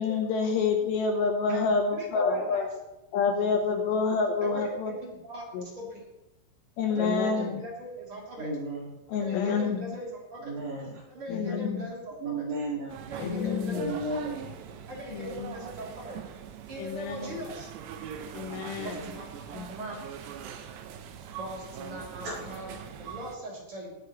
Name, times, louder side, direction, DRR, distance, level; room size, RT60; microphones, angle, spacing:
voice 1, 0.0-2.7 3.1-5.0 5.5-5.7 6.8-7.6 9.1-10.0 11.3-11.9 13.2-14.0 15.1-15.6 16.8-17.4 18.3-19.1 19.5-19.7, left 5 dB, 75° left, 4 dB, 3.0 m, -28 dB
voice 2, 1.5-2.6 4.4-6.0 6.8-8.5 9.2-10.5 11.1-12.5 13.0-14.3 14.9-16.2 16.7-17.7 18.8-20.0 21.3-24.0, right 1 dB, 30° right, -3 dB, 3.3 m, -40 dB
voice 3, 8.4-8.9 10.4-11.0 12.2-13.0 13.7-14.5 22.2-22.4, right 2 dB, 60° right, -7 dB, 6.0 m, -33 dB
sound 1, 12.9-23.4, right 8 dB, 75° right, 2.9 m, -42 dB
20.0 x 9.7 x 3.2 m, 0.93 s
omnidirectional pair, 5.5 m